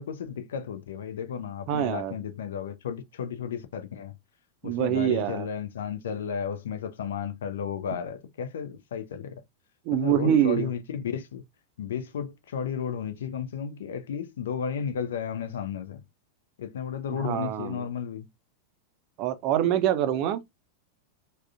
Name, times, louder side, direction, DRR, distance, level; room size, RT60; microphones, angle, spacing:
voice 1, 0.0-4.1 4.6-9.4 9.9-11.4 11.8-16.0 16.6-18.3, left 7 dB, 60° left, 0.4 m, -33 dB
voice 2, 1.7-2.1 4.6-5.5 9.9-10.7 17.2-17.8 19.2-20.4, right 11 dB, 40° right, 0.4 m, -25 dB
3.5 x 2.1 x 2.4 m
figure-of-eight pair, 90°, 0 cm